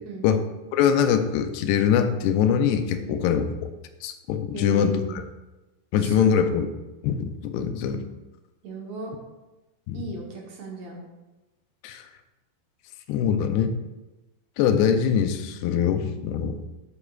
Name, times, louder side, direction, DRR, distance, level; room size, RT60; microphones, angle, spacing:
voice 1, 0.7-3.5 4.0-5.2 5.9-6.7 7.0-8.0 9.9-10.0 11.8-12.0 13.1-13.7 14.6-16.6, left 8 dB, 90° left, 8 dB, 2.6 m, -23 dB
voice 2, 4.5-5.2 6.0-6.4 8.6-9.1 9.9-11.0, right 3 dB, 70° right, -1 dB, 1.7 m, -36 dB
8.4 x 8.1 x 2.3 m, 1.1 s
omnidirectional pair, 4.5 m